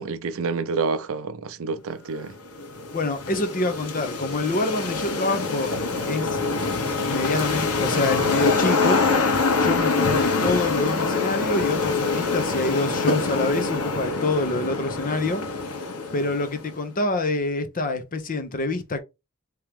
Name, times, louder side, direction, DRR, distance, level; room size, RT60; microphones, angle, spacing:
voice 1, 0.0-2.3, right 4 dB, 65° right, 0.5 m, -28 dB
sound 1, 2.2-16.7, left 4 dB, 85° left, 1.2 m, -25 dB
voice 2, 2.9-5.7 6.1-6.4 7.1-9.0 9.6-15.4 16.1-19.0, left 2 dB, 40° left, 0.7 m, -26 dB
3.6 x 2.9 x 3.4 m
head